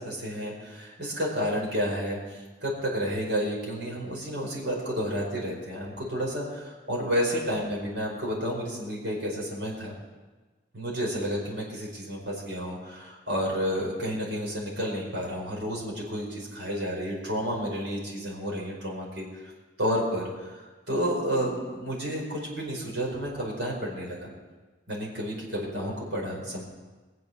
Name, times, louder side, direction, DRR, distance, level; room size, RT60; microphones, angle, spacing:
voice 1, 0.0-9.9 10.7-19.4 19.8-24.3 24.9-26.6, equal, 70° right, -3 dB, 4.9 m, -31 dB
21.0 x 7.5 x 6.9 m, 1.3 s
head